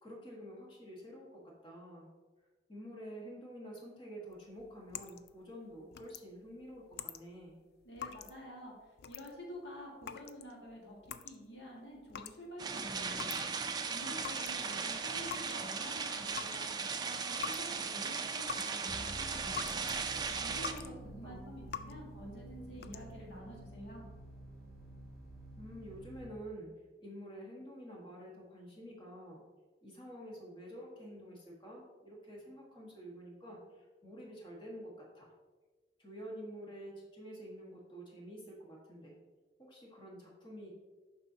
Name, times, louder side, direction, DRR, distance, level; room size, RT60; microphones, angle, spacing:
voice 1, 0.0-2.1 2.7-7.6 21.2-21.6 25.6-26.7 27.0-29.4 29.8-35.3 36.0-39.1 39.6-40.7, equal, 25° left, -3 dB, 1.5 m, -49 dB
sound 1, 4.3-13.8 14.0-20.0 20.3-21.0 21.3-22.1 22.6-23.3, left 7 dB, 60° left, 0.3 m, -47 dB
voice 2, 7.9-8.7 9.1-11.0 11.2-13.2 13.9-19.7 20.4-24.1, equal, 80° left, -2 dB, 1.7 m, -49 dB
sound 2, 12.6-20.7, right 5 dB, 25° right, 0.4 m, -37 dB
sound 3, 18.9-26.3, right 1 dB, 5° left, 1.9 m, -50 dB
7.2 x 5.4 x 2.8 m, 1.3 s
head